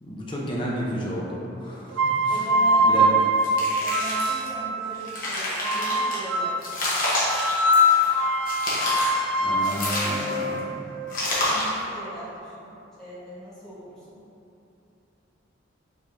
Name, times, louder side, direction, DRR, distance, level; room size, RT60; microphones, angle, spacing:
voice 1, 0.0-2.5 2.9-3.0 9.4-10.7, equal, 25° left, -4 dB, 0.5 m, -32 dB
sound 1, 1.9-4.8 5.6-6.7 7.3-11.3, equal, 80° right, 0.5 m, -23 dB
voice 2, 2.3-3.2 3.8-6.6 11.4-14.2, equal, 5° left, -12 dB, 1.2 m, -40 dB
sound 2, 3.4-4.5 4.9-6.2 6.6-8.1 8.5-9.2 9.6-10.5 11.1-11.8, left 1 dB, 45° left, 0.9 m, -28 dB
sound 3, 8.0-8.3 9.4-9.6 9.8-10.2 11.1-11.6 11.9-12.7, right 2 dB, 50° right, 1.4 m, -45 dB
4.9 x 3.5 x 2.6 m, 2.9 s
head